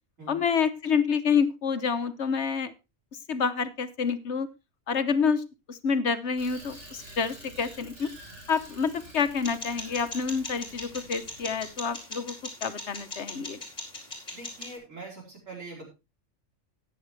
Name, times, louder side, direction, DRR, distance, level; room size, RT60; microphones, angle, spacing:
voice 1, 0.3-2.7 3.3-4.5 4.9-5.4 5.7-8.1 8.5-12.4 12.6-13.6, left 6 dB, 60° left, 11 dB, 1.2 m, -28 dB
Bicycle, 6.4-11.9, right 1 dB, 65° right, 4.6 m, -49 dB
sound 1, 9.4-14.8, left 2 dB, 35° left, 3.9 m, -40 dB
voice 2, 14.3-15.9, right 3 dB, 85° right, -2 dB, 5.2 m, -43 dB
14.0 x 9.7 x 3.2 m, 0.26 s
omnidirectional pair, 1.3 m